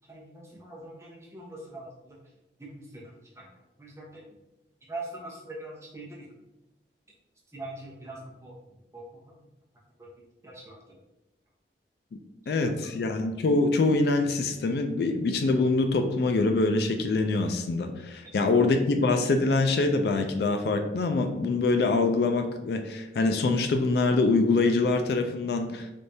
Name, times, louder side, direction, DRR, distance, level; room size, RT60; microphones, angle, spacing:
voice 1, 0.1-2.2 2.6-3.5 3.8-4.2 4.9-6.3 7.5-9.5 10.4-10.8 12.6-12.7, right 2 dB, 15° right, -5 dB, 0.8 m, -43 dB
voice 2, 12.5-25.9, left 3 dB, 65° left, 6 dB, 0.3 m, -24 dB
3.4 x 3.1 x 2.7 m, 0.95 s
head